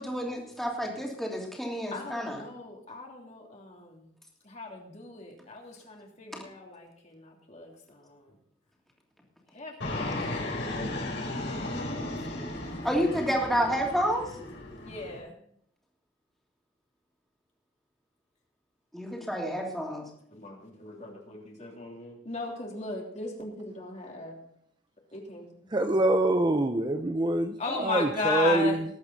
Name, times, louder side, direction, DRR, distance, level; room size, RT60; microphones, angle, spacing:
voice 1, 0.0-2.4 6.3-6.4 12.8-14.3 18.9-20.0, equal, ahead, -2 dB, 3.0 m, -29 dB
voice 2, 1.9-4.1 4.4-8.3 9.5-11.9 12.3-12.9 13.1-13.3 14.8-15.4 19.2-19.4 20.3-24.4 25.1-25.7 27.6-28.8, left 3 dB, 40° left, 0 dB, 3.0 m, -37 dB
Fixed-wing aircraft airplane, 9.8-15.2, left 1 dB, 75° left, 5.6 m, -35 dB
voice 3, 25.7-28.8, right 1 dB, 25° right, 7 dB, 0.6 m, -25 dB
20.0 x 8.5 x 4.0 m, 0.67 s
head